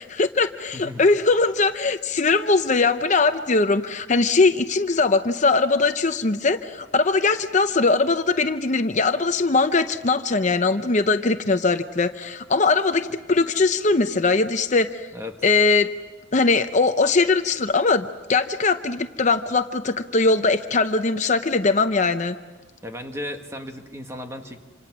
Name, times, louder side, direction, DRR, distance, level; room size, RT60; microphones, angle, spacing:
voice 1, 0.0-15.1 15.4-15.9 16.3-22.3, left 3 dB, 40° left, 9 dB, 0.7 m, -21 dB
voice 2, 0.7-1.0 15.1-15.4 22.8-24.6, left 1 dB, 15° right, 4 dB, 1.6 m, -35 dB
27.5 x 26.5 x 6.1 m, 1.2 s
head